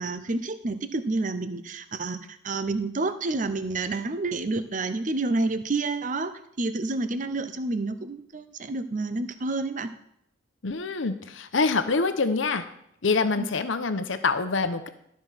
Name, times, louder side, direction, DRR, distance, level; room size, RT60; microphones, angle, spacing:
voice 1, 0.0-9.9 13.4-13.5, right 3 dB, 40° right, 11 dB, 0.6 m, -29 dB
voice 2, 10.6-12.7 13.0-14.9, left 4 dB, 70° left, 9 dB, 0.8 m, -25 dB
12.5 x 4.9 x 5.7 m, 0.75 s
head